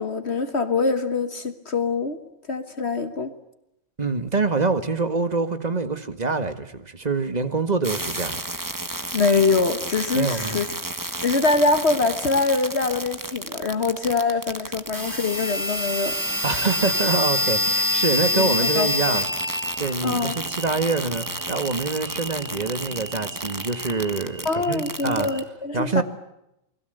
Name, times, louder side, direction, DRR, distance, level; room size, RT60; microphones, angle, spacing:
voice 1, 0.0-2.2 2.5-3.3 9.1-10.7 11.2-16.1 18.3-19.2 20.0-20.3 24.4-26.0, left 3 dB, 60° left, 9 dB, 1.7 m, -24 dB
voice 2, 4.0-8.4 10.1-10.6 16.4-19.3 19.8-25.3 25.7-26.0, right 3 dB, 35° right, 10 dB, 1.9 m, -25 dB
sound 1, 7.8-25.4, equal, 15° right, 1.6 m, -28 dB
29.5 x 21.0 x 8.0 m, 0.85 s
omnidirectional pair, 1.3 m